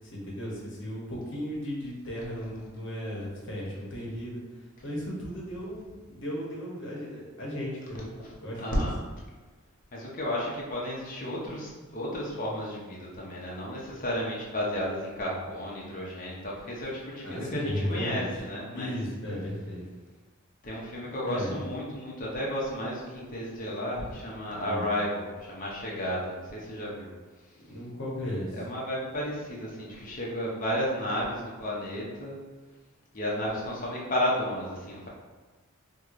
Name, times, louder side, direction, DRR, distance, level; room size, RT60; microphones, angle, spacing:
voice 1, 0.0-8.1 8.4-8.9 17.2-18.3 18.7-19.8 21.2-21.6 24.6-24.9 27.7-28.6, equal, 60° left, -3 dB, 0.9 m, -35 dB
voice 2, 8.6-8.9 9.9-18.9 20.6-27.1 28.5-32.4 33.1-35.1, equal, 40° left, -4 dB, 0.7 m, -32 dB
4.6 x 2.2 x 2.5 m, 1.3 s
head